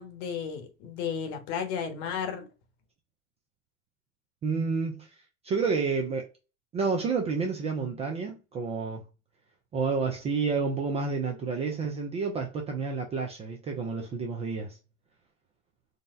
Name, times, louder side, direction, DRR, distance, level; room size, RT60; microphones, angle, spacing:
voice 1, 0.0-2.5, left 7 dB, 60° left, 1.1 m, -33 dB
voice 2, 4.4-5.1 5.4-6.3 6.7-9.0 9.7-14.8, right 4 dB, 15° right, 0.3 m, -30 dB
3.9 x 2.1 x 2.5 m
hypercardioid pair, 110°, 41 cm